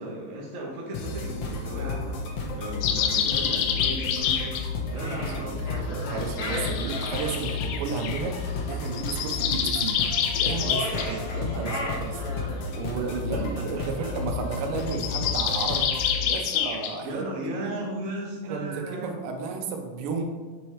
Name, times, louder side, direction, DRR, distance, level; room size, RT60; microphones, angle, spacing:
voice 1, 0.0-4.5 4.9-5.9 10.8-11.4 12.7-12.8 13.3-14.1 17.0-19.3, right 1 dB, 65° right, -3 dB, 0.7 m, -36 dB
sound 1, 0.9-16.2, left 3 dB, 65° left, 1.5 m, -32 dB
sound 2, 2.8-4.7 6.3-8.2 8.9-11.1 14.8-16.9, left 8 dB, 85° left, 2.2 m, -27 dB
sound 3, 4.9-7.3 10.5-12.7, left 1 dB, 50° left, 1.2 m, -35 dB
voice 2, 4.9-8.4 8.7-10.0 10.4-12.3 12.7-15.9 16.2-17.3 17.6-17.8 18.4-20.2, right 4 dB, 90° right, 4 dB, 2.5 m, -33 dB
7.4 x 6.2 x 3.2 m, 1.5 s
omnidirectional pair, 3.8 m